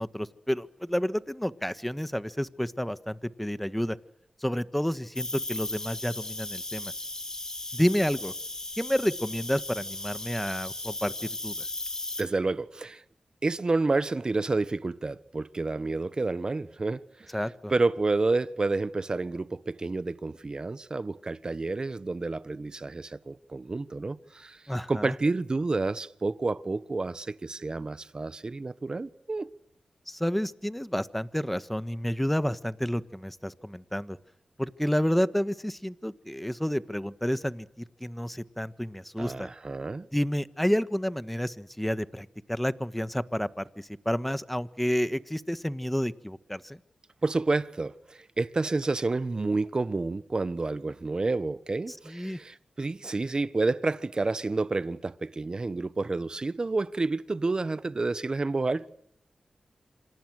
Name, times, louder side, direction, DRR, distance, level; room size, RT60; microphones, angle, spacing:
voice 1, 0.0-4.0 4.4-6.9 7.7-8.3 8.8-11.5 17.3-17.7 24.7-25.1 30.1-34.2 34.6-37.7 38.0-39.5 40.1-46.8 52.1-52.4, equal, 5° left, 1.5 m, -30 dB
Cricket, 5.2-12.2, left 2 dB, 30° left, 7.8 m, -36 dB
voice 2, 12.2-13.0 13.4-17.4 17.7-24.6 24.9-29.5 39.2-40.1 47.2-58.9, right 3 dB, 40° right, 1.3 m, -29 dB
27.5 x 26.5 x 6.5 m
cardioid pair, 50°, 2 cm